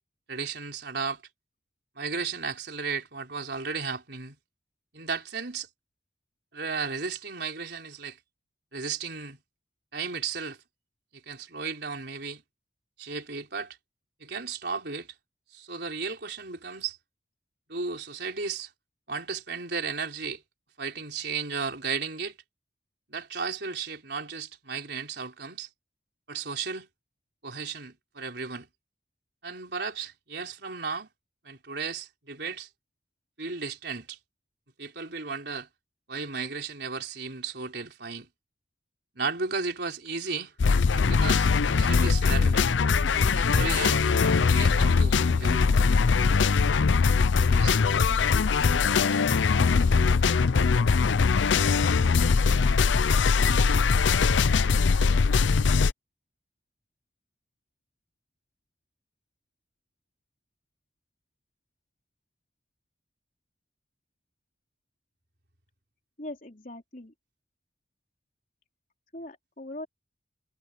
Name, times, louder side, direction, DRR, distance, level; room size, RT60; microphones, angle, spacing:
voice 1, 0.3-1.2 2.0-4.4 4.9-5.7 6.5-8.2 8.7-9.4 9.9-10.6 11.1-12.4 13.0-13.8 14.2-15.1 15.5-17.0 17.7-18.7 19.1-20.4 20.8-22.4 23.1-25.7 26.3-26.9 27.4-28.7 29.4-31.1 31.4-32.7 33.4-34.2 34.8-35.7 36.1-38.3 39.1-40.5 40.9-42.6 43.3-45.6 47.4-47.8, right 5 dB, 65° right, 3.8 m, -34 dB
sound 1, 40.6-55.9, left 5 dB, 90° left, 0.5 m, -22 dB
sound 2, 42.0-48.8, equal, 30° left, 3.7 m, -39 dB
voice 2, 66.2-67.1 69.1-69.9, left 1 dB, 45° left, 3.6 m, -40 dB
head